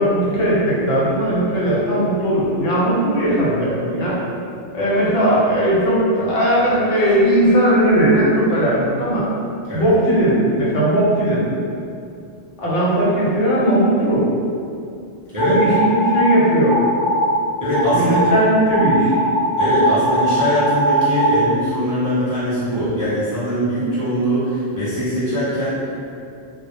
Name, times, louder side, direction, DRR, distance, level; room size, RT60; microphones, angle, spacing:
voice 1, 0.0-4.2 4.7-9.3 9.7-11.4 12.6-14.3 15.5-16.8 17.9-19.1, right 1 dB, 75° left, -7 dB, 1.0 m, -18 dB
sound 1, 15.4-16.3 16.7-17.4 17.7-18.3 18.7-21.4, right 1 dB, 60° left, 0.5 m, -19 dB
voice 2, 17.6-18.2 19.6-25.9, equal, 30° right, -13 dB, 0.4 m, -21 dB
2.1 x 2.1 x 2.8 m, 2.5 s
omnidirectional pair, 1.2 m